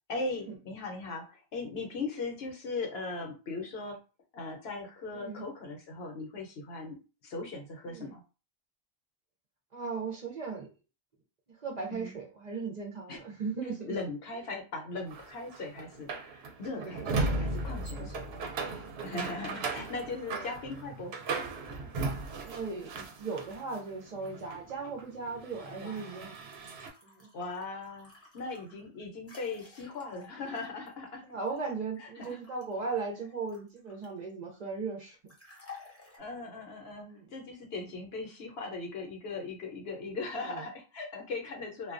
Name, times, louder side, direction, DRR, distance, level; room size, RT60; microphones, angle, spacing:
voice 1, 0.1-4.0 4.3-8.2 11.9-12.1 13.1-13.2 13.9-18.2 19.0-21.2 21.8-21.9 25.8-26.3 27.3-31.2 32.2-32.4 36.2-41.9, left 3 dB, 70° left, 1 dB, 1.0 m, -39 dB
voice 2, 5.1-5.4 7.9-8.1 9.7-10.7 11.5-13.9 16.7-17.4 17.7-18.1 22.4-26.4 27.0-27.3 28.7-28.8 31.2-35.2 37.0-37.3 40.4-40.7, right 4 dB, 50° right, 0 dB, 0.6 m, -38 dB
sound 1, 15.1-23.8 24.1-26.9, right 3 dB, 80° right, 0.8 m, -37 dB
sound 2, 26.3-31.7 32.2-34.3 35.3-36.2, left 4 dB, 15° left, 0.6 m, -54 dB
2.2 x 2.2 x 2.4 m, 0.32 s
omnidirectional pair, 1.1 m